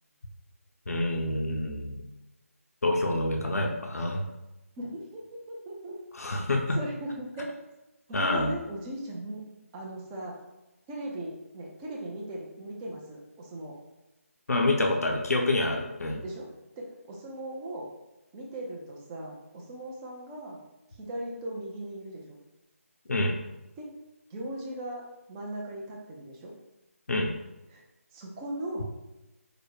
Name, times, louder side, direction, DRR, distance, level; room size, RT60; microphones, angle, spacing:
voice 1, 0.9-2.0 2.8-4.3 6.2-6.8 8.1-8.5 14.5-16.2 23.1-23.4 27.1-27.3, left 2 dB, 80° left, 2 dB, 0.7 m, -27 dB
voice 2, 4.8-6.0 6.8-7.6 8.1-9.4 9.7-10.4 10.9-13.8 14.7-14.8 16.2-16.5 16.8-17.9 18.3-20.6 21.0-22.4 23.8-23.9 24.3-26.5 27.7-27.8 28.1-28.9, right 1 dB, 10° right, -2 dB, 0.4 m, -38 dB
4.9 x 2.1 x 4.7 m, 0.98 s
figure-of-eight pair, 165°, 8 cm